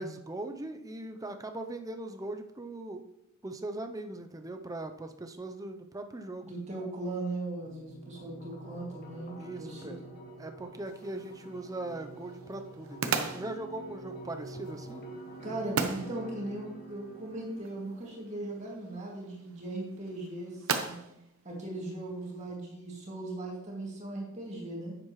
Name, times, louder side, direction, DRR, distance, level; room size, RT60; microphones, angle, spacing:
voice 1, 0.0-3.0 3.4-6.5 9.4-10.0 10.4-15.0, right 2 dB, 15° right, 6 dB, 0.6 m, -40 dB
voice 2, 6.4-10.1 15.4-21.0 21.4-25.0, right 2 dB, 35° right, -3 dB, 2.3 m, -38 dB
sound 1, 7.6-18.7, right 2 dB, 45° left, 1.6 m, -47 dB
sound 2, 10.9-22.6, right 5 dB, 75° right, 0.8 m, -39 dB
10.5 x 7.6 x 3.1 m, 0.84 s
head